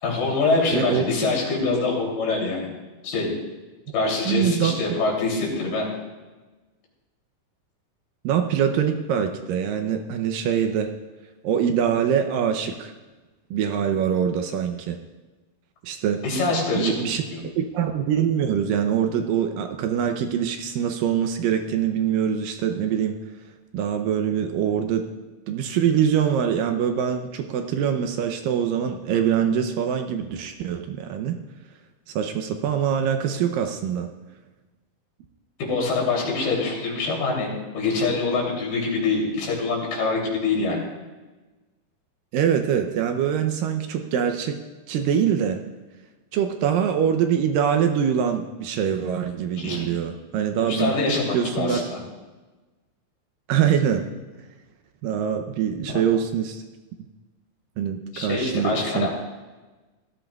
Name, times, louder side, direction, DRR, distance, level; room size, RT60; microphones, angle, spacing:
voice 1, 0.0-2.7 3.0-3.3 3.9-5.9 16.2-17.4 35.6-37.5 37.7-40.8 49.6-49.9 50.6-52.0 58.1-59.1, left 3 dB, 85° left, -2 dB, 4.9 m, -24 dB
voice 2, 0.7-1.0 4.3-5.0 8.2-10.9 11.4-12.9 13.5-15.0 15.8-16.2 16.7-23.2 23.7-25.1 25.5-31.4 32.1-34.1 42.3-44.6 44.9-45.6 46.3-50.9 51.3-51.8 53.5-54.1 55.0-56.6 57.8-59.1, right 8 dB, 75° right, 6 dB, 2.2 m, -24 dB
18.0 x 13.5 x 2.3 m, 1.2 s
omnidirectional pair, 4.4 m